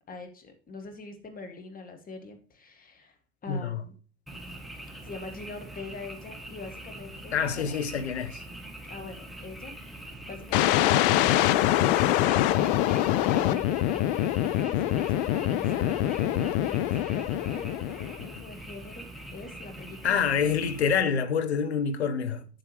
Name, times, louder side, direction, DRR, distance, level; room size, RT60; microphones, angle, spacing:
voice 1, 0.1-4.0 5.0-7.8 8.9-12.9 13.4-14.3 14.7-20.2 20.4-20.5, left 3 dB, 25° left, 2.0 m, -43 dB
voice 2, 3.5-3.8 7.3-8.4 20.0-22.5, left 6 dB, 75° left, 0.9 m, -27 dB
Frog, 4.3-21.0, right 1 dB, ahead, 1.6 m, -43 dB
sound 1, 10.5-18.4, left 13 dB, 55° left, 0.6 m, -24 dB
8.3 x 7.7 x 3.2 m
figure-of-eight pair, 65°, 32 cm